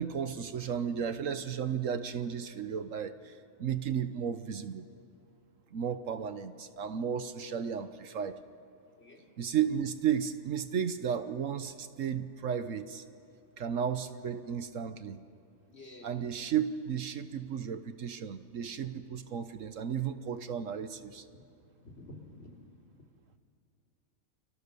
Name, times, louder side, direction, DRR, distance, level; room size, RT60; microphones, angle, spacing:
voice 1, 0.0-3.3 3.6-4.9 5.7-8.4 9.4-13.0 13.6-15.2 16.0-21.2, right 8 dB, 65° right, 11 dB, 1.3 m, -34 dB
voice 2, 15.7-16.1 21.3-21.5 21.8-22.5, left 1 dB, 50° left, 0 dB, 3.6 m, -50 dB
29.5 x 24.5 x 6.8 m, 2.6 s
omnidirectional pair, 1.5 m